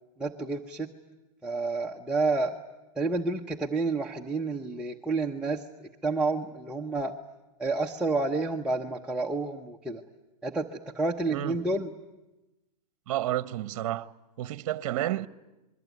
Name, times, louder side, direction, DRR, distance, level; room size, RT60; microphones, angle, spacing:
voice 1, 0.2-0.9 1.4-2.5 3.0-5.6 6.0-7.1 7.6-10.0 10.4-11.9, right 3 dB, 5° right, 0.9 m, -29 dB
voice 2, 13.1-14.1 14.4-15.3, right 13 dB, 55° right, 1.0 m, -30 dB
28.0 x 22.5 x 9.3 m
hypercardioid pair, 145°, 20 cm